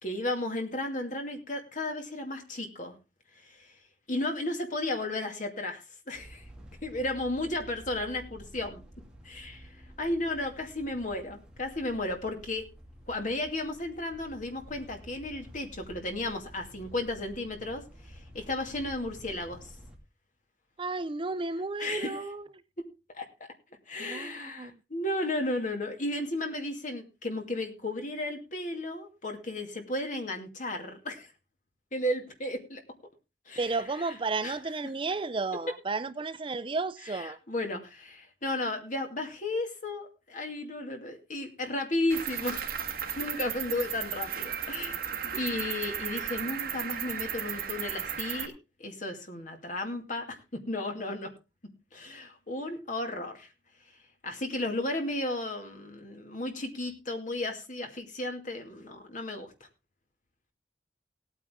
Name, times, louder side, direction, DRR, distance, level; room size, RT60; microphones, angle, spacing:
voice 1, 0.0-2.9 3.4-3.7 4.1-6.4 6.8-8.8 9.2-9.6 10.0-12.7 13.1-19.6 21.8-22.2 23.1-23.5 23.9-31.3 31.9-32.8 33.5-33.7 34.4-34.6 37.2-42.7 43.2-45.0 45.3-48.5 48.8-51.3 51.9-53.5 54.2-59.5, left 1 dB, 45° left, 2.4 m, -34 dB
sound 1, 6.1-20.0, equal, 5° right, 2.4 m, -51 dB
voice 2, 20.8-22.5 24.0-24.8 33.6-37.4, right 3 dB, 30° right, 0.5 m, -33 dB
Cricket, 42.1-48.5, right 8 dB, 55° right, 1.6 m, -35 dB
17.5 x 9.0 x 3.7 m
head